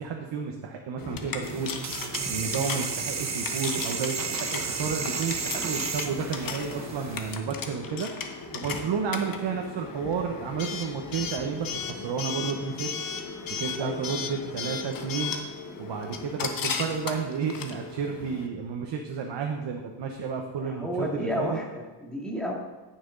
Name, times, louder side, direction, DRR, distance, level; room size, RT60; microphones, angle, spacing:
voice 1, 0.0-1.7 2.3-8.1 8.5-12.9 13.6-15.3 15.8-21.6, right 6 dB, 70° right, 2 dB, 1.1 m, -31 dB
Coin (dropping) / Alarm, 1.0-18.5, left 5 dB, 50° left, 1.1 m, -36 dB
sound 1, 1.4-7.4, right 5 dB, 40° right, 0.9 m, -33 dB
voice 2, 20.6-22.5, left 1 dB, ahead, -2 dB, 2.3 m, -31 dB
14.5 x 6.2 x 3.9 m, 1.2 s
cardioid pair, 115°, 44 cm